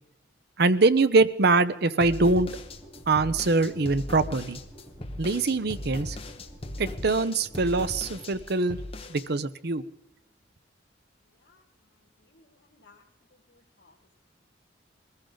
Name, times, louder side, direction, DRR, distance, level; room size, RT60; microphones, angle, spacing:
voice 1, 0.6-2.5 3.1-4.6 5.2-6.2 6.8-8.8 9.1-9.8, right 3 dB, 60° right, 14 dB, 0.7 m, -23 dB
sound 1, 2.0-9.3, left 1 dB, 30° left, 1.4 m, -38 dB
sound 2, 2.3-8.4, right 1 dB, 20° right, 6.0 m, -49 dB
voice 2, 11.3-13.0 13.3-14.2, left 3 dB, 70° left, 0 dB, 2.5 m, -62 dB
22.5 x 15.0 x 3.9 m, 0.83 s
head